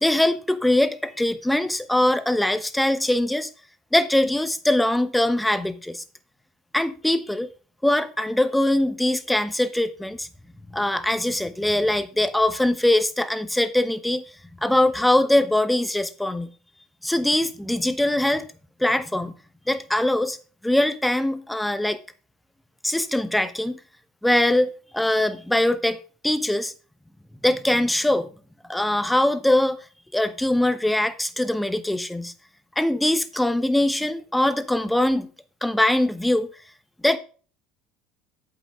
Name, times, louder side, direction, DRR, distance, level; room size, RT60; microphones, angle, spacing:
voice 1, 0.0-3.5 3.9-6.0 6.7-7.5 7.8-10.3 10.7-14.2 14.6-16.5 17.0-18.5 18.8-19.3 19.7-20.4 20.6-22.0 22.8-23.8 24.2-26.7 27.4-28.3 28.7-29.8 30.1-32.3 32.8-35.3 35.6-36.5 37.0-37.2, left 1 dB, 5° left, 1.1 m, -22 dB
8.4 x 8.3 x 3.7 m
hypercardioid pair, 80°, 0 cm